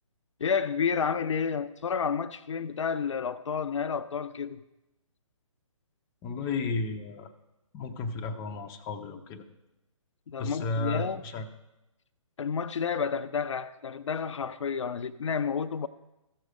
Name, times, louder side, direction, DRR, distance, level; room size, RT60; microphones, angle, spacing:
voice 1, 0.4-4.6 10.3-11.2 12.4-15.9, left 6 dB, 65° left, 0.5 m, -30 dB
voice 2, 6.2-7.3 7.7-9.5 10.4-11.4, left 3 dB, 20° left, 0.6 m, -33 dB
14.0 x 6.4 x 4.9 m
figure-of-eight pair, 140°, 17 cm